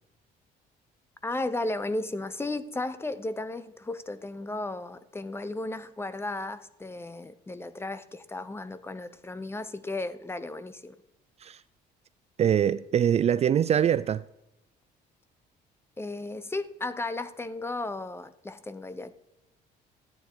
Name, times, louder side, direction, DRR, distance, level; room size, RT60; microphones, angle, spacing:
voice 1, 1.2-11.0 16.0-19.1, left 2 dB, 15° left, 0.9 m, -34 dB
voice 2, 12.4-14.2, right 9 dB, 40° right, 0.4 m, -23 dB
14.5 x 9.0 x 4.7 m
cardioid pair, 110°, 17 cm